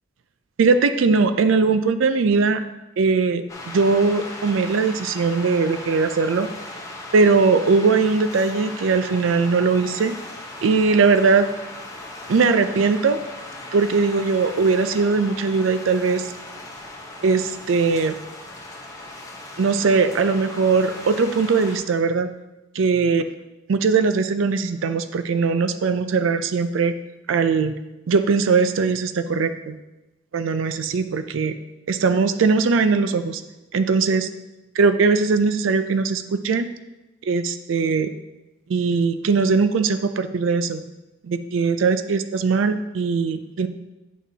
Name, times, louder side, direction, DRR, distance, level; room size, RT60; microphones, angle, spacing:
voice 1, 0.6-2.6 3.0-6.5 7.1-10.1 10.6-11.5 12.3-13.2 13.7-16.3 17.2-18.2 19.6-22.3 22.7-23.2 23.7-26.9 27.3-27.7 28.1-29.8 30.3-31.5 31.9-33.4 33.7-34.3 34.8-36.7 37.3-38.1 38.7-40.8 41.2-43.7, right 4 dB, 75° right, 10 dB, 0.4 m, -20 dB
sound 1, 3.5-21.8, left 2 dB, 15° left, 0.9 m, -38 dB
9.1 x 6.0 x 2.8 m, 1.0 s
head